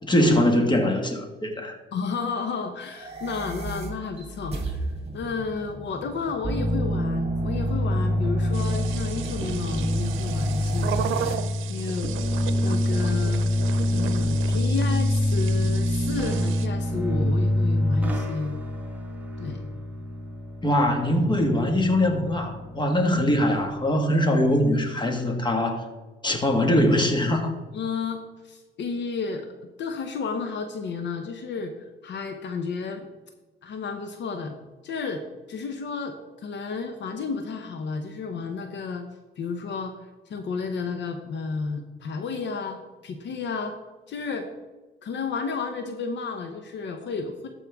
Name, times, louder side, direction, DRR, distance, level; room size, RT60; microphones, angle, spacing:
voice 1, 0.0-1.8 20.6-25.9 26.2-27.5, left 1 dB, 25° left, 4 dB, 1.7 m, -22 dB
voice 2, 1.9-4.9 5.1-11.0 11.7-12.1 12.6-13.5 13.9-18.6 19.4-19.7 27.7-29.5 29.8-33.1 33.6-34.6 34.8-39.0 39.4-43.8 44.1-44.5 45.0-47.5, left 5 dB, 65° left, 6 dB, 0.9 m, -32 dB
sound 1, 2.9-11.3, right 3 dB, 30° right, 2.2 m, -37 dB
sound 2, 6.4-23.8, left 1 dB, 10° right, 1.4 m, -26 dB
sound 3, 8.5-16.7, right 9 dB, 80° right, 0.7 m, -36 dB
13.5 x 5.4 x 3.6 m, 1.2 s
cardioid pair, 90°, 20 cm